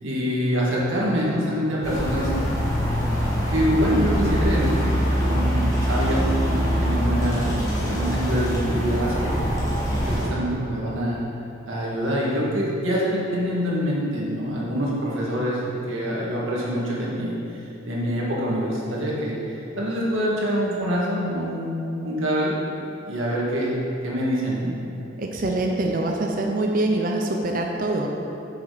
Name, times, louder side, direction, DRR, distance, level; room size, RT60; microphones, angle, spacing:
voice 1, 0.0-2.3 3.5-9.4 9.9-11.2 11.7-17.4 17.9-22.5 23.1-23.7 24.0-24.7, equal, 85° right, -6 dB, 1.9 m, -25 dB
sound 1, 1.8-10.2, equal, 15° left, 1.3 m, -24 dB
voice 2, 25.2-28.1, right 2 dB, 45° right, 1 dB, 0.5 m, -24 dB
7.1 x 6.1 x 5.0 m, 2.8 s
head